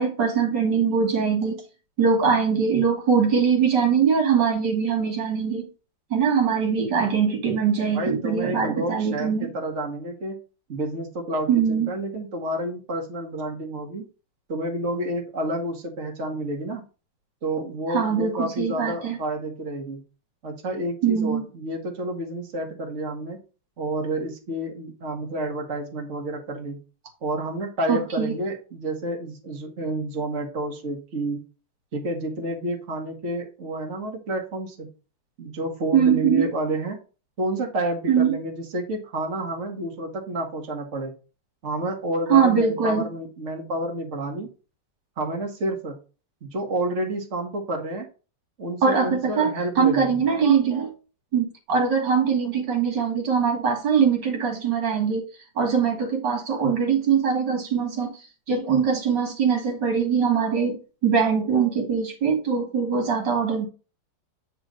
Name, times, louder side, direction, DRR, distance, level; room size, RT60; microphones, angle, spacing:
voice 1, 0.0-1.6 2.0-5.7 6.1-9.5 11.5-11.9 17.9-19.2 21.0-21.4 27.9-28.4 35.9-36.5 38.1-38.3 42.3-43.1 48.8-50.9 51.3-55.2 55.6-58.1 58.5-63.7, right 6 dB, 70° right, 2.4 m, -22 dB
voice 2, 7.9-10.4 10.7-14.0 14.5-16.8 17.4-20.0 20.4-23.4 23.8-26.8 27.2-31.4 31.9-34.9 35.4-37.0 37.4-41.1 41.6-44.5 45.2-46.0 46.4-48.1 48.6-50.2, right 1 dB, 40° right, 1.7 m, -29 dB
8.8 x 3.2 x 5.1 m
omnidirectional pair, 2.0 m